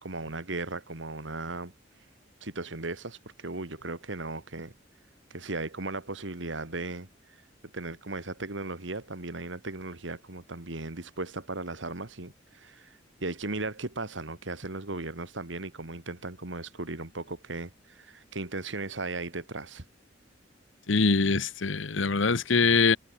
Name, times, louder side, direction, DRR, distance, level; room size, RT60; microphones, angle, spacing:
voice 1, 0.0-1.7 2.4-4.7 5.3-7.1 7.7-19.8, right 2 dB, 80° right, 2.4 m, -37 dB
voice 2, 20.9-23.0, left 4 dB, 90° left, 1.1 m, -23 dB
head